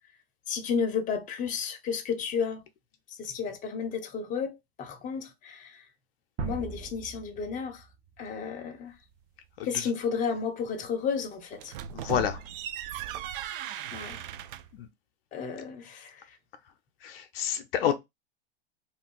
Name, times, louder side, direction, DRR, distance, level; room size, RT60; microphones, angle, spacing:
voice 1, 0.5-2.6 3.2-5.8 6.4-7.9 8.2-8.9 9.6-11.7 13.9-14.2 15.3-16.1, left 6 dB, 25° left, 0.7 m, -32 dB
sound 1, 6.4-9.3, right 5 dB, 30° right, 0.8 m, -40 dB
voice 2, 9.6-9.9 11.9-12.4 14.7-14.9 17.0-17.9, left 10 dB, 65° left, 0.6 m, -29 dB
sound 2, 11.5-14.8, right 11 dB, 60° right, 0.4 m, -38 dB
2.5 x 2.2 x 3.6 m
hypercardioid pair, 100°, 31 cm